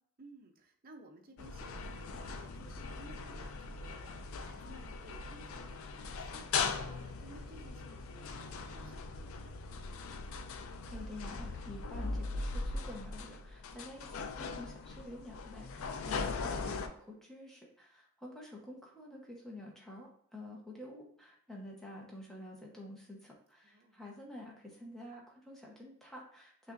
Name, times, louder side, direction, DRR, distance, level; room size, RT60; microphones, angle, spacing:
voice 1, 0.2-10.1 23.6-24.0, right 2 dB, 45° right, 3 dB, 0.6 m, -57 dB
sound 1, 1.4-16.9, left 4 dB, 70° left, 0.4 m, -40 dB
voice 2, 10.9-26.7, left 1 dB, ahead, -3 dB, 0.9 m, -49 dB
6.0 x 2.5 x 2.6 m, 0.63 s
head